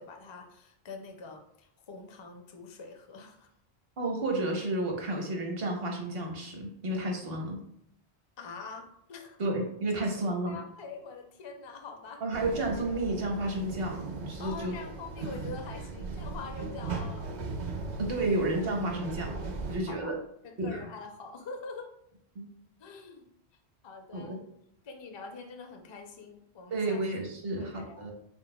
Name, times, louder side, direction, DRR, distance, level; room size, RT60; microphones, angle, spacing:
voice 1, 0.0-3.5 8.4-9.4 9.9-12.2 14.4-17.3 18.1-18.3 19.9-20.2 20.4-21.9 22.8-23.3 23.8-24.4 24.8-27.0 27.5-28.1, left 4 dB, 35° left, 4 dB, 0.4 m, -44 dB
voice 2, 4.0-7.6 9.4-10.6 12.2-14.7 18.0-19.4 19.7-20.1 20.6-20.8 22.3-22.5 24.1-24.4 26.7-28.1, right 2 dB, 65° right, 1 dB, 1.1 m, -31 dB
sound 1, 12.3-19.8, right 3 dB, 50° right, 0.6 m, -38 dB
4.4 x 4.0 x 2.2 m, 0.72 s
omnidirectional pair, 1.1 m